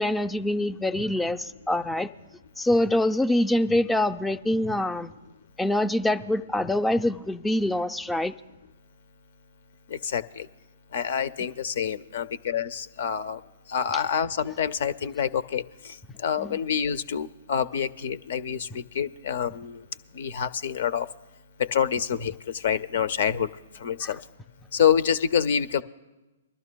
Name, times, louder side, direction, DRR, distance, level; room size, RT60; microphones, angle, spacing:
voice 1, 0.0-2.1 2.6-5.1 5.6-8.3 16.4-16.6 24.0-24.1, left 1 dB, 5° left, 10 dB, 0.4 m, -25 dB
voice 2, 9.9-10.5 10.9-13.4 13.7-19.8 20.1-21.1 21.6-23.5 23.8-24.2 24.7-25.8, left 8 dB, 60° left, 16 dB, 0.5 m, -27 dB
24.5 x 12.5 x 2.3 m, 1.1 s
figure-of-eight pair, 120°, 0 cm